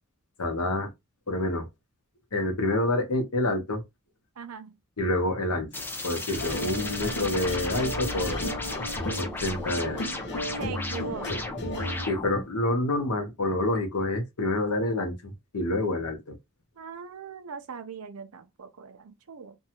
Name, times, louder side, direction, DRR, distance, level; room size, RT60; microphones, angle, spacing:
voice 1, 0.4-0.9 1.3-1.7 2.3-3.8 5.0-5.7 6.0-8.4 9.2-10.1 12.1-16.4, left 2 dB, 80° left, 0.9 m, -27 dB
voice 2, 4.4-4.8 10.6-11.5 16.8-19.6, right 6 dB, 70° right, 0.5 m, -40 dB
sound 1, 5.7-12.5, left 2 dB, 10° left, 0.4 m, -35 dB
sound 2, 6.3-12.1, left 1 dB, 50° left, 0.7 m, -33 dB
2.7 x 2.3 x 2.8 m
head